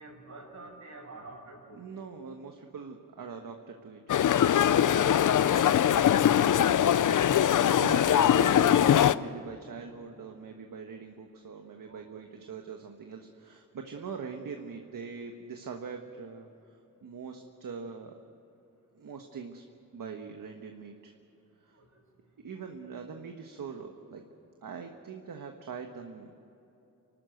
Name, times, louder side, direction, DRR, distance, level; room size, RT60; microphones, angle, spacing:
voice 1, 0.0-1.8 4.6-6.4 9.0-9.2 11.8-12.1 12.3-12.4 21.7-21.8, right 2 dB, 60° right, 0 dB, 6.5 m, -49 dB
voice 2, 1.8-4.3 7.8-16.5 17.0-18.1 18.9-19.6 19.9-21.1 21.6-21.7 22.4-24.2 24.6-26.3, right 5 dB, 75° right, 4 dB, 1.4 m, -42 dB
sound 1, 4.1-9.2, left 10 dB, 65° left, 0.6 m, -22 dB
29.0 x 12.5 x 8.1 m, 3.0 s
wide cardioid pair, 110°, 33 cm